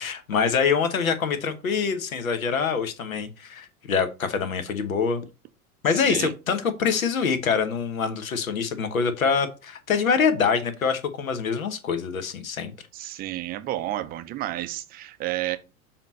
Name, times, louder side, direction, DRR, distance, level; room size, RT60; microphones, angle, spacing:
voice 1, 0.0-5.2 5.8-12.7, left 6 dB, 70° left, 1.1 m, -25 dB
voice 2, 12.9-15.6, right 15 dB, 20° right, 0.6 m, -31 dB
7.1 x 2.9 x 5.1 m
figure-of-eight pair, 90°, 44 cm